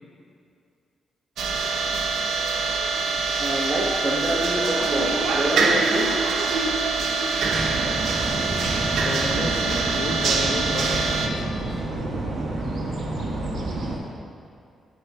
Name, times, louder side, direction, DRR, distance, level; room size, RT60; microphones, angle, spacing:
sound 1, 1.4-11.3, right 4 dB, 80° right, 0.8 m, -24 dB
voice 1, 3.1-6.2 6.5-6.6, right 1 dB, 15° right, -4 dB, 1.1 m, -27 dB
sound 2, 7.4-14.0, right 2 dB, 50° right, 1.6 m, -29 dB
voice 2, 8.9-11.9, left 3 dB, 50° left, 2 dB, 0.9 m, -32 dB
13.5 x 5.4 x 3.6 m, 2.4 s
wide cardioid pair, 170°, 0 cm